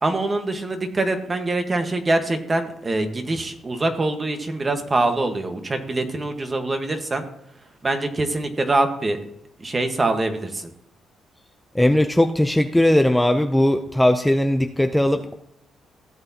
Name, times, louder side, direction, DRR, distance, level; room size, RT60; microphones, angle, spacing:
voice 1, 0.0-7.2 7.8-9.2 9.6-10.7, right 2 dB, 25° right, 6 dB, 1.4 m, -24 dB
voice 2, 11.7-15.3, left 1 dB, 5° left, 7 dB, 0.5 m, -19 dB
16.0 x 8.1 x 2.9 m, 0.75 s
cardioid pair, 90°, 0 cm